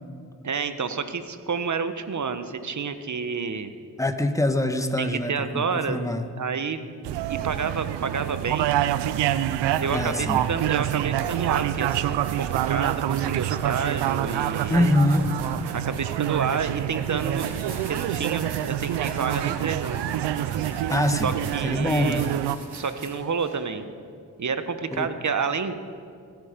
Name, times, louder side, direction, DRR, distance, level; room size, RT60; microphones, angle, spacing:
voice 1, 0.4-3.7 5.0-6.8 7.3-8.7 9.8-14.9 15.7-17.5 17.9-20.0 21.2-22.3 22.7-23.9 24.4-25.7, right 5 dB, 45° right, 10 dB, 1.2 m, -29 dB
voice 2, 4.0-6.3 9.9-10.4 14.7-15.3 20.9-21.3 21.6-22.3 24.9-25.1, left 1 dB, 10° left, 8 dB, 1.4 m, -24 dB
sound 1, 7.0-22.6, right 12 dB, 85° right, 0.6 m, -27 dB
sound 2, 8.7-8.9 9.4-23.5, right 3 dB, 70° right, 3.1 m, -43 dB
24.5 x 9.4 x 5.2 m, 2.2 s
supercardioid pair, 50°, 40 cm